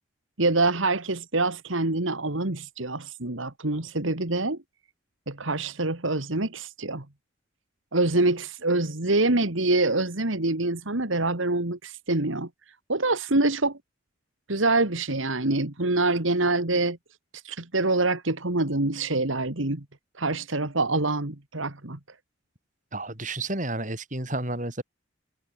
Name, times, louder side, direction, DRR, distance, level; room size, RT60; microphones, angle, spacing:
voice 1, 0.4-4.6 5.3-7.1 7.9-12.5 12.9-13.8 14.5-17.0 17.3-19.8 20.2-22.0, right 2 dB, 75° right, 2.4 m, -25 dB
voice 2, 22.9-24.8, right 2 dB, 40° right, 6.9 m, -31 dB
head